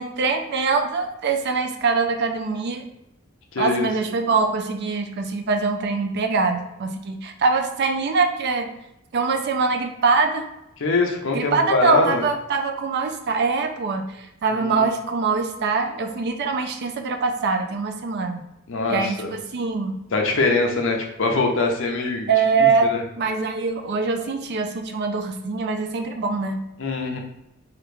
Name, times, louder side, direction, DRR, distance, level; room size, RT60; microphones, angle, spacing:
voice 1, 0.0-2.8 3.6-8.7 9.1-10.4 11.3-18.4 18.9-19.9 22.3-22.9 23.2-26.6, right 4 dB, 55° right, 5 dB, 0.4 m, -23 dB
voice 2, 3.5-3.9 10.8-12.2 14.5-14.9 18.7-19.3 20.1-22.3 22.8-23.0 26.8-27.2, left 3 dB, 65° left, 2 dB, 0.6 m, -23 dB
3.0 x 2.4 x 3.3 m, 0.89 s
head